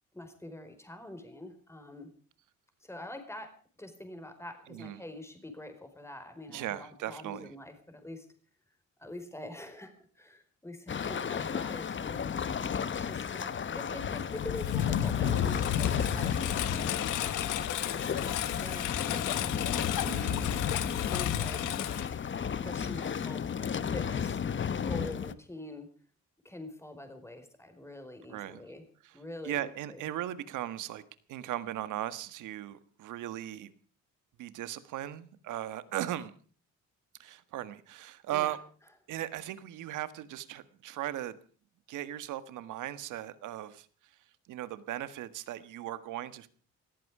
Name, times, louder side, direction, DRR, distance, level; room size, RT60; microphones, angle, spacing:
voice 1, 0.1-2.1 2.8-8.3 9.0-12.2 12.9-16.9 18.1-18.9 19.1-19.8 20.1-20.6 21.1-21.7 22.6-24.4 24.9-25.9 26.4-28.8 29.1-30.0 38.3-38.6, left 1 dB, 10° left, 7 dB, 4.7 m, -45 dB
voice 2, 4.7-5.0 6.5-7.5 20.1-20.5 28.3-28.6 29.0-29.2 29.4-31.0 31.3-33.7 34.4-36.3 37.2-38.6 39.1-41.4 41.9-43.9 44.5-46.5, right 13 dB, 85° right, 13 dB, 1.7 m, -37 dB
sound 1, 10.9-25.3, left 7 dB, 40° left, 1.1 m, -34 dB
Engine, 14.0-22.7, left 10 dB, 85° left, 1.5 m, -32 dB
20.0 x 14.5 x 4.9 m, 0.42 s
cardioid pair, 90°, 30 cm